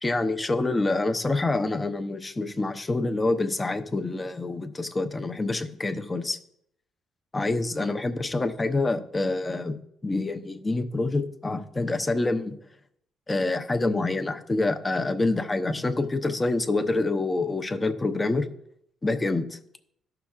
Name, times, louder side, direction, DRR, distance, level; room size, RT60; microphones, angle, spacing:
voice 1, 0.0-6.4 7.3-9.7 10.0-12.5 13.3-18.5 19.0-19.6, left 2 dB, 20° left, 7 dB, 0.8 m, -26 dB
14.5 x 5.8 x 2.4 m, 0.72 s
cardioid pair, 90°, 0 cm